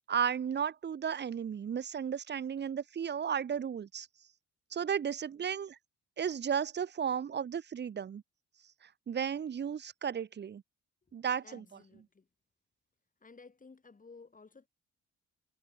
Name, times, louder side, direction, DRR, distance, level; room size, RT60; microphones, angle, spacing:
voice 1, 0.0-4.1 4.7-5.8 6.2-8.2 9.1-10.6 11.1-11.6, right 8 dB, 35° right, 0.7 m, -34 dB
voice 2, 11.4-12.3 13.2-14.7, left 4 dB, 25° left, 4.3 m, -55 dB
cardioid pair, 90°, 30 cm